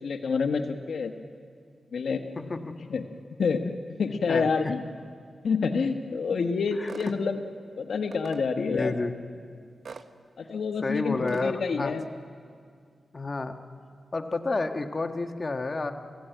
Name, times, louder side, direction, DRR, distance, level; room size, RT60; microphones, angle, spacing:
voice 1, 0.0-1.1 1.9-2.5 2.9-3.0 3.4-4.8 5.4-7.4 7.8-9.0 10.4-12.0, left 5 dB, 80° left, 6 dB, 1.2 m, -28 dB
voice 2, 6.8-7.1 8.7-9.1 10.8-11.9 13.1-13.6 14.1-15.9, left 3 dB, 40° left, 6 dB, 1.4 m, -30 dB
sound 1, 6.9-7.2 8.1-8.4 9.8-10.1 11.3-11.5, right 5 dB, 65° right, 1.0 m, -42 dB
30.0 x 15.5 x 9.2 m, 2.2 s
cardioid pair, 65°, 0 cm